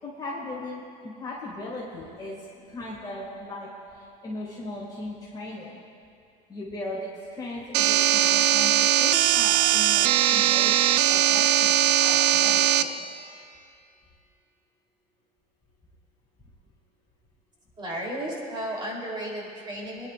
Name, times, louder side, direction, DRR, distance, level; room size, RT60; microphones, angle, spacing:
voice 1, 0.0-5.8 6.5-10.8 11.1-13.0, left 1 dB, 20° left, -6 dB, 2.2 m, -38 dB
sound 1, 7.7-12.8, right 11 dB, 75° right, 0.5 m, -20 dB
voice 2, 17.8-20.1, right 1 dB, 25° right, -3 dB, 3.3 m, -33 dB
26.5 x 10.5 x 2.5 m, 2.4 s
supercardioid pair, 115°, 19 cm